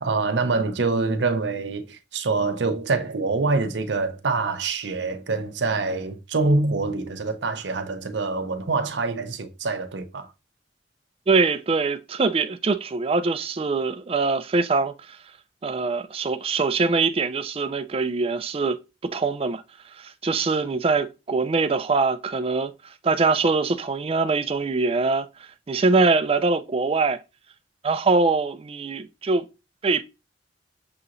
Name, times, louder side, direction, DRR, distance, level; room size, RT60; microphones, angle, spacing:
voice 1, 0.0-10.3, right 3 dB, 80° right, 0.6 m, -25 dB
voice 2, 11.3-15.2 15.6-19.6 19.9-27.2 27.8-29.5 29.8-30.0, right 4 dB, 30° right, 0.4 m, -23 dB
6.6 x 2.9 x 2.5 m
head